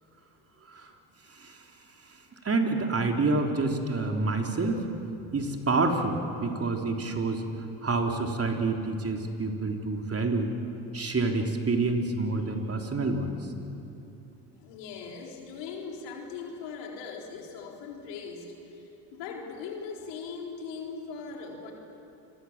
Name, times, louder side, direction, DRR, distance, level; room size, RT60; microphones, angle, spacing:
voice 1, 1.3-1.6 2.4-4.9 5.3-7.4 7.8-10.5 10.9-13.4, right 3 dB, 35° right, 3 dB, 3.6 m, -28 dB
voice 2, 14.6-21.7, left 5 dB, 75° left, 1 dB, 4.1 m, -40 dB
28.0 x 22.5 x 7.5 m, 3.0 s
hypercardioid pair, 65°, 42 cm